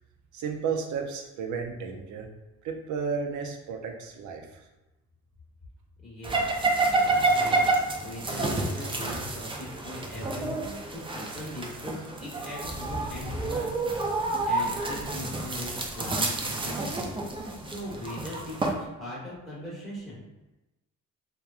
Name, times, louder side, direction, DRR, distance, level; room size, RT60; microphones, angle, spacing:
voice 1, 0.3-2.3 2.6-4.7, right 5 dB, 70° right, 3 dB, 0.5 m, -33 dB
voice 2, 6.0-6.7 7.3-20.2, left 1 dB, ahead, -8 dB, 1.1 m, -40 dB
sound 1, 6.2-18.7, right 2 dB, 20° right, 0.4 m, -29 dB
2.9 x 2.2 x 2.4 m, 1.0 s
cardioid pair, 90°, 30 cm